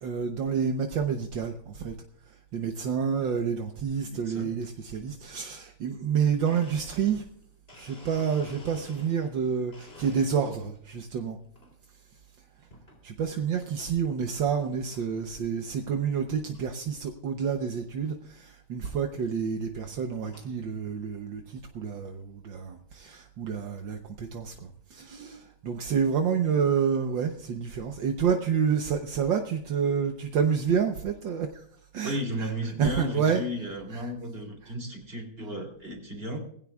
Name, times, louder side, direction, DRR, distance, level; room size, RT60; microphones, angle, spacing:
voice 1, 0.0-2.0 2.3-7.3 7.7-11.4 13.0-31.6 31.9-33.4 33.9-34.1 34.6-34.8, right 7 dB, 70° right, 4 dB, 1.7 m, -29 dB
voice 2, 4.0-4.5 32.0-36.4, equal, 30° right, 2 dB, 3.5 m, -34 dB
Domestic sounds home sounds, 6.4-9.4 9.7-10.7 11.2-11.7 12.7-13.0 13.6-13.7 14.6-14.7 14.9-15.3 15.7-15.8 16.0-16.1 16.5-16.6 18.0-18.1 18.8-19.0 19.6-20.6, left 1 dB, 30° left, 3.6 m, -51 dB
20.5 x 16.0 x 2.4 m, 0.63 s
omnidirectional pair, 2.2 m